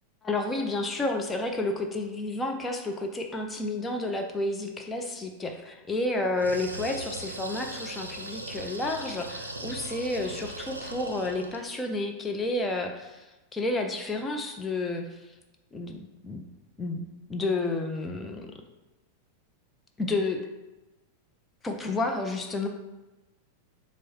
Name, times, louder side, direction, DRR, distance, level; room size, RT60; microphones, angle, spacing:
voice 1, 0.2-13.3 13.5-15.3 15.7-16.4 16.8-18.5 20.0-20.5 21.6-22.7, left 2 dB, 15° left, 3 dB, 0.4 m, -31 dB
sound 1, 6.3-11.7, right 2 dB, 85° right, 0.3 m, -39 dB
4.5 x 2.0 x 4.3 m, 1.1 s
figure-of-eight pair, 90°, 0 cm